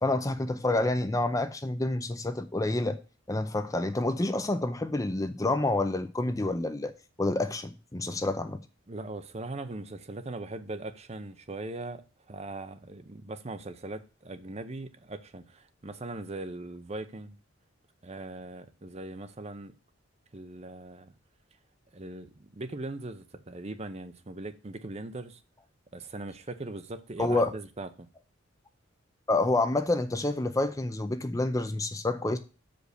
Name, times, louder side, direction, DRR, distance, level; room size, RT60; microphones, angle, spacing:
voice 1, 0.0-3.0 3.3-6.9 7.2-8.6 27.2-27.5 29.3-32.4, left 2 dB, 15° left, 0.5 m, -28 dB
voice 2, 8.9-17.4 18.0-19.7 20.3-21.1 21.9-25.4 25.9-28.1, right 2 dB, 30° right, 0.7 m, -40 dB
6.5 x 5.2 x 6.5 m
head